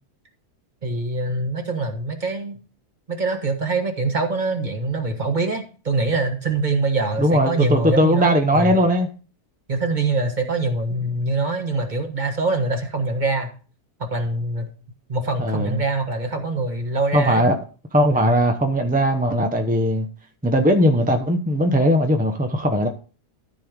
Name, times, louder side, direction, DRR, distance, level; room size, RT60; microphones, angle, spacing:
voice 1, 0.8-2.6 3.1-8.7 9.7-13.5 14.0-14.7 15.1-17.5 18.1-18.3, right 3 dB, 30° right, 1.4 m, -24 dB
voice 2, 7.2-9.1 15.4-15.8 17.1-17.6 17.9-20.1 20.4-22.9, equal, 10° right, 0.4 m, -19 dB
13.5 x 4.7 x 5.1 m
omnidirectional pair, 1.8 m